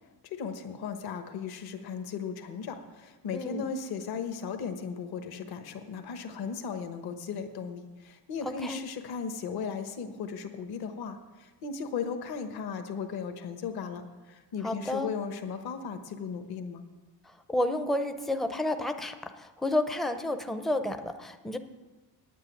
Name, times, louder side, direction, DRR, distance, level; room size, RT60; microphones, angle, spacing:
voice 1, 0.2-16.8, left 6 dB, 60° left, 6 dB, 1.3 m, -36 dB
voice 2, 3.3-3.7 8.4-8.8 14.6-15.1 17.5-21.6, left 1 dB, ahead, 8 dB, 0.5 m, -30 dB
9.4 x 8.4 x 9.3 m, 1.2 s
cardioid pair, 145°, 42 cm